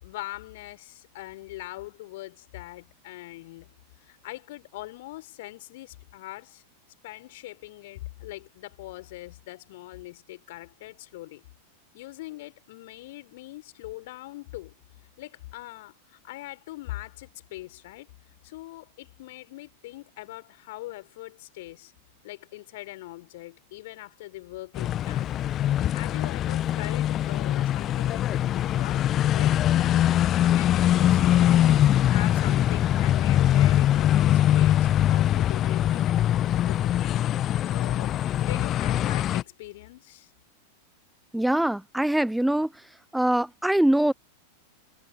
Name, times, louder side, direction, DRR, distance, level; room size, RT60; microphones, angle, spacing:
voice 1, 0.0-3.7 4.0-6.6 7.0-11.4 11.9-14.7 15.2-18.1 18.4-21.9 22.2-25.3 25.7-29.1 29.3-30.1 30.5-36.0 36.7-37.2 37.7-40.3, left 18 dB, 50° left, 4.2 m, -41 dB
sound 1, 24.8-39.4, left 12 dB, 30° left, 0.9 m, -22 dB
voice 2, 41.3-42.7 43.1-44.1, right 1 dB, 5° right, 0.6 m, -23 dB
figure-of-eight pair, 90°, 0 cm